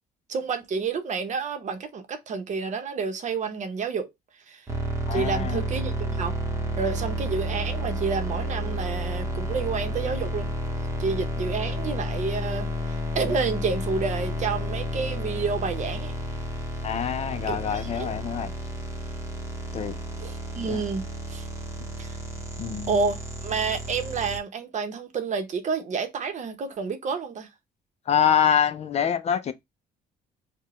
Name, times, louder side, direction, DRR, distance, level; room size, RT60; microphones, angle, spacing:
voice 1, 0.3-4.1 4.5-4.6 5.1-6.4 6.8-10.5 11.0-16.1 17.5-18.1 20.2-21.0 21.3-21.5 22.0-22.2 22.9-27.5, right 5 dB, 45° right, 0.8 m, -29 dB
sound 1, 4.7-24.4, equal, 15° right, 0.9 m, -31 dB
voice 2, 5.1-5.6 16.8-18.5 19.7-20.0 20.6-20.8 22.6-23.0 28.1-29.5, left 8 dB, 40° left, 0.5 m, -25 dB
4.7 x 2.2 x 3.0 m
cardioid pair, 110°, 17 cm